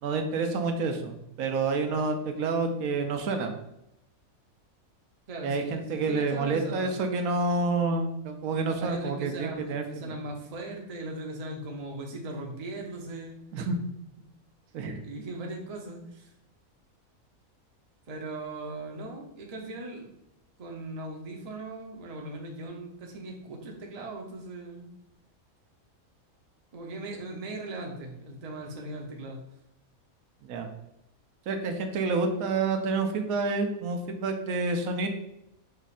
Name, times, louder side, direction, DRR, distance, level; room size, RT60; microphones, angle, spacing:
voice 1, 0.0-3.5 5.4-10.1 13.5-13.8 14.7-15.0 30.4-30.7 31.5-35.1, right 3 dB, 80° right, 5 dB, 1.1 m, -28 dB
voice 2, 5.3-7.0 8.8-13.4 15.0-16.3 18.1-20.1 20.6-24.9 26.7-29.4, right 2 dB, 35° right, 1 dB, 0.6 m, -39 dB
5.2 x 2.4 x 4.1 m, 0.83 s
omnidirectional pair, 1.5 m